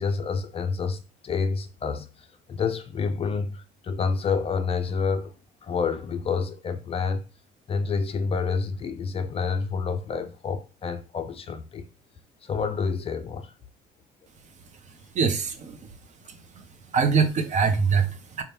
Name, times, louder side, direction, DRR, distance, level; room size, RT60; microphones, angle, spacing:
voice 1, 0.0-5.3 5.6-7.2 7.7-11.8 12.4-13.5, left 5 dB, 35° left, 0.4 m, -28 dB
voice 2, 15.1-15.8 16.3-16.6 16.9-18.4, right 5 dB, 45° right, 0.7 m, -24 dB
4.2 x 2.3 x 3.4 m
cardioid pair, 110°, 17 cm